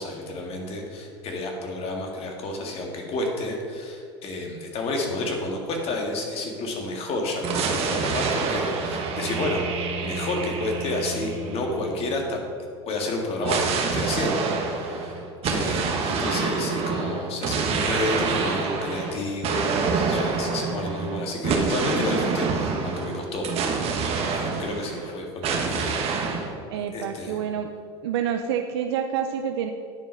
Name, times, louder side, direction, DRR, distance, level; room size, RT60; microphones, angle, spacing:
voice 1, 0.0-9.6 10.0-12.4 12.9-26.0 26.9-27.4, left 2 dB, 45° left, 1 dB, 1.8 m, -30 dB
sound 1, 7.4-12.1 13.4-25.1 25.4-26.5, right 5 dB, 45° right, 1.3 m, -27 dB
voice 2, 26.7-27.7 28.0-29.7, right 8 dB, 75° right, 6 dB, 0.5 m, -27 dB
9.9 x 4.8 x 5.5 m, 2.3 s
hypercardioid pair, 90°, 14 cm